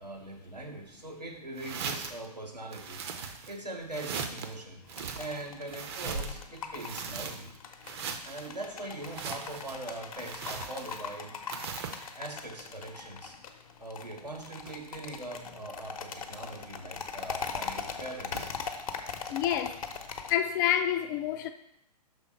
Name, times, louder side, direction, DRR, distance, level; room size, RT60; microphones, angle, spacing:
voice 1, 0.0-3.1 3.5-4.8 5.2-7.5 8.2-11.3 12.2-13.4 13.8-18.5, right 2 dB, 85° right, 1.4 m, -41 dB
sound 1, 1.6-2.3 2.7-3.6 3.9-4.5 4.9-6.4 6.7-7.6 7.8-8.5 9.0-9.8 10.2-11.1 11.5-12.1, right 6 dB, 40° right, 0.7 m, -39 dB
sound 2, 3.3-5.1 5.6-7.5 7.9-8.1 9.4-10.2 10.6-10.7 11.6-11.7 12.0-12.1 12.2-12.3 13.2-13.4 13.7-13.8 14.2-14.9 16.7-16.8 17.9-18.7 20.0-20.1, right 2 dB, 70° right, 2.3 m, -47 dB
sound 3, 4.8-20.3, left 5 dB, 60° left, 0.8 m, -41 dB
voice 2, 19.3-19.8 20.3-21.5, left 11 dB, 30° left, 0.4 m, -28 dB
6.0 x 3.7 x 5.6 m
figure-of-eight pair, 115°, 21 cm